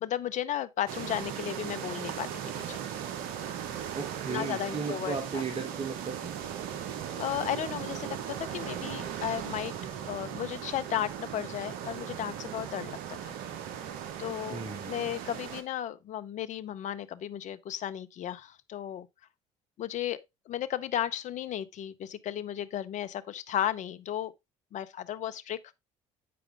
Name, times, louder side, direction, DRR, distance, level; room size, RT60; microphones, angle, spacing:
voice 1, 0.0-3.0 4.3-5.4 7.2-9.7 10.0-13.4 14.2-19.1 19.8-24.4 24.7-25.7, left 11 dB, 50° left, 0.7 m, -34 dB
sound 1, 0.9-15.6, right 9 dB, 70° right, 1.0 m, -38 dB
voice 2, 3.9-6.3 14.5-15.0, right 5 dB, 35° right, 1.7 m, -35 dB
8.6 x 4.9 x 3.3 m
hypercardioid pair, 60°, 16 cm